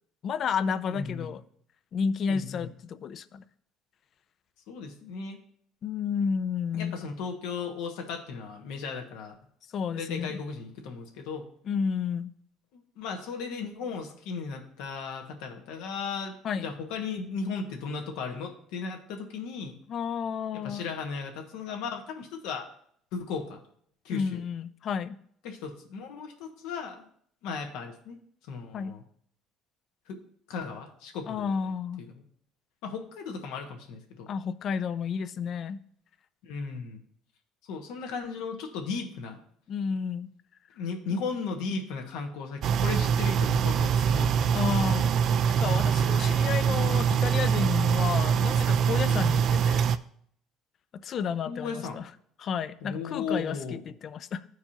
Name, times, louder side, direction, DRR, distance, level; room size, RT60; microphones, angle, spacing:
voice 1, 0.2-1.4 1.9-3.4 5.8-7.0 9.7-10.4 11.7-12.3 16.4-16.7 19.9-20.9 24.1-25.2 28.7-29.0 31.3-32.1 34.3-35.8 39.7-40.3 41.1-41.2 44.5-45.1 45.6-49.9 50.9-52.1 52.4-54.4, left 6 dB, 50° left, 0.4 m, -31 dB
voice 2, 0.9-1.3 2.3-2.7 4.7-5.4 6.7-9.3 9.9-11.5 12.7-19.8 20.6-22.7 23.1-23.6 24.0-24.4 25.4-27.1 27.4-28.2 28.5-29.0 30.1-30.2 30.5-31.7 32.1-32.2 32.8-34.3 36.4-37.0 37.6-39.4 40.8-44.6 49.1-49.4 51.4-52.0 52.8-53.8, left 5 dB, 80° left, 1.4 m, -36 dB
sound 1, 42.6-50.0, right 7 dB, 55° right, 0.3 m, -24 dB
14.0 x 4.7 x 2.9 m
cardioid pair, 110°, 0 cm